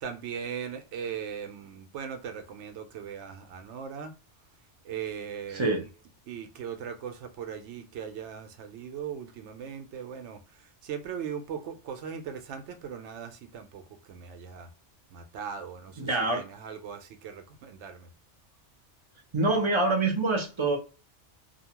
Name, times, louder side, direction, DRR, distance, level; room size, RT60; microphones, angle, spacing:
voice 1, 0.0-4.1 4.8-5.8 6.3-14.7 15.1-16.1 16.3-18.1, right 7 dB, 75° right, 0.9 m, -39 dB
voice 2, 5.5-5.8 16.0-16.4 19.3-20.8, right 2 dB, 30° right, 0.6 m, -25 dB
2.7 x 2.2 x 2.8 m
omnidirectional pair, 1.2 m